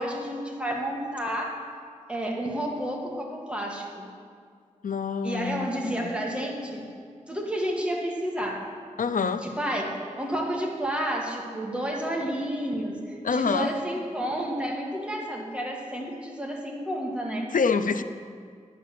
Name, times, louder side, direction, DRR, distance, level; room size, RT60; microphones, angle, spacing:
voice 1, 0.0-1.6 2.1-4.1 5.2-6.9 7.3-8.7 9.4-9.9 10.2-17.5, equal, 10° right, -1 dB, 2.0 m, -30 dB
voice 2, 4.8-6.1 9.0-9.5 13.2-13.8 17.5-18.0, left 5 dB, 85° left, 11 dB, 0.5 m, -26 dB
11.0 x 6.7 x 7.5 m, 2.1 s
wide cardioid pair, 60°, 14 cm